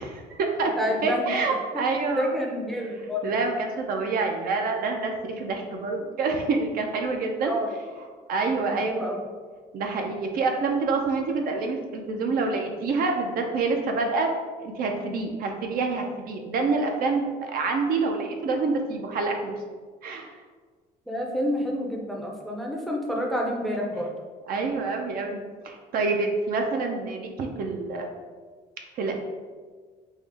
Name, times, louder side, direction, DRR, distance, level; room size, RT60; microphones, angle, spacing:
voice 1, 0.0-0.7 1.0-2.3 3.2-7.5 8.3-9.0 9.7-14.3 14.6-19.5 20.0-20.4 24.5-28.1 29.0-29.1, right 3 dB, 60° right, 3 dB, 0.5 m, -27 dB
voice 2, 0.8-1.3 1.7-1.8 2.2-3.3 7.4-7.7 8.6-9.2 21.1-24.1, equal, ahead, -1 dB, 0.5 m, -28 dB
3.6 x 2.0 x 3.2 m, 1.5 s
cardioid pair, 110°, 17 cm